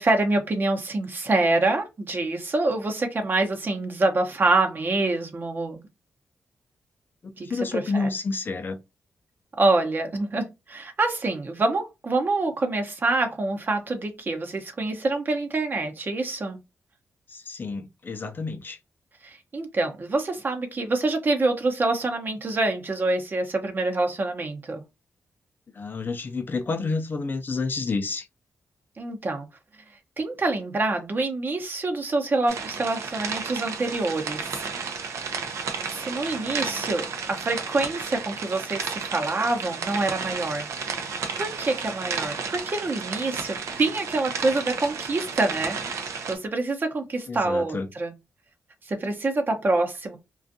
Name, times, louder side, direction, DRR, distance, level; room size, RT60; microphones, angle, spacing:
voice 1, 0.0-5.8 7.4-8.1 9.6-16.6 19.2-24.8 29.0-29.5 30.2-34.6 35.9-40.7 41.4-48.1 48.8-50.2, right 2 dB, 45° right, 0.7 m, -26 dB
voice 2, 7.4-8.8 17.3-18.8 25.7-28.3 47.3-47.9, left 4 dB, 45° left, 0.4 m, -29 dB
sound 1, 32.5-46.3, right 5 dB, 85° right, 0.5 m, -32 dB
2.5 x 2.3 x 2.6 m
cardioid pair, 70°, 5 cm